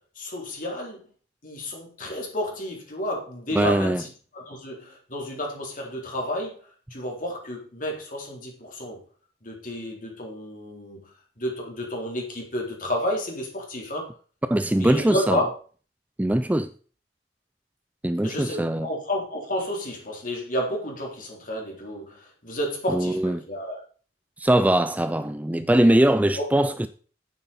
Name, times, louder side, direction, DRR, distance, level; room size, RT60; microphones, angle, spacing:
voice 1, 0.2-1.0 1.4-6.6 6.9-9.0 9.4-11.0 11.4-14.1 14.8-15.5 18.2-23.8 26.4-26.5, equal, 50° left, 3.7 m, -31 dB
voice 2, 3.5-4.0 14.5-15.4 16.2-16.7 18.0-18.9 22.9-23.4 24.4-26.9, right 1 dB, 10° right, 0.4 m, -21 dB
11.0 x 8.9 x 4.2 m
head